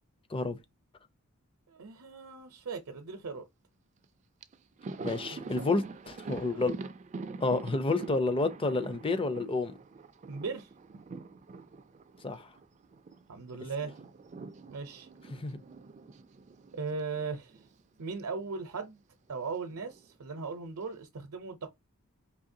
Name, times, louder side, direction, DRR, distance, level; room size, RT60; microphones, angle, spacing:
voice 1, 1.7-3.4 5.3-5.8 6.5-6.6 10.3-10.7 13.3-13.9 14.7-15.1 16.7-17.7 18.0-19.0 19.3-21.7, right 4 dB, 75° right, 0.7 m, -38 dB
Thunder, 4.0-4.1 4.4-13.2 13.5-17.8 18.1-18.2 19.4-20.1, right 3 dB, 30° right, 0.3 m, -45 dB
voice 2, 5.0-6.7 7.4-9.7 12.2-12.5 15.3-15.6, left 3 dB, 25° left, 0.5 m, -30 dB
4.8 x 3.1 x 2.7 m
head